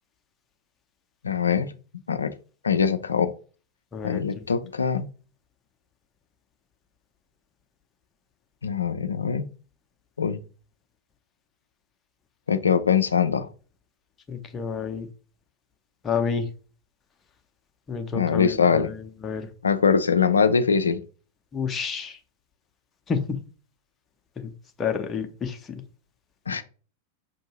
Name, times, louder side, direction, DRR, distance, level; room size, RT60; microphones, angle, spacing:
voice 1, 1.2-1.7 2.1-2.3 2.6-3.3 4.0-5.1 8.6-9.5 10.2-10.4 12.5-13.5 18.1-18.9 19.6-21.0 26.5-26.6, left 6 dB, 75° left, 11 dB, 0.4 m, -22 dB
voice 2, 3.9-4.5 14.3-15.1 16.0-16.5 17.9-19.0 19.2-19.5 21.5-22.2 23.1-23.4 24.4-24.5 24.8-25.6, left 6 dB, 20° left, 4 dB, 0.6 m, -29 dB
5.5 x 2.6 x 2.9 m, 0.38 s
figure-of-eight pair, 90°, 0 cm